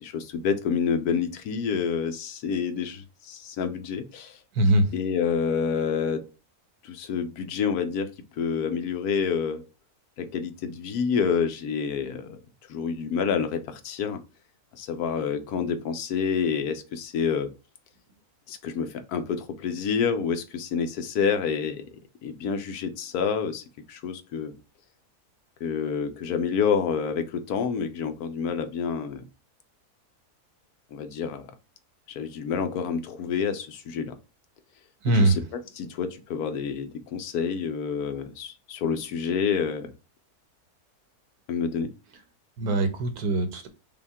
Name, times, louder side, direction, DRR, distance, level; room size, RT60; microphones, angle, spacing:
voice 1, 0.0-4.4 4.9-6.2 6.8-8.1 8.4-9.6 10.2-12.4 12.7-14.2 14.7-17.5 18.5-21.9 22.2-24.5 25.6-29.2 30.9-31.5 32.1-34.1 35.1-39.9 41.5-41.9, left 6 dB, 80° left, 1.2 m, -28 dB
voice 2, 4.6-4.9 35.0-35.4 42.6-43.7, right 1 dB, 75° right, 1.3 m, -22 dB
5.4 x 2.3 x 3.5 m
omnidirectional pair, 1.6 m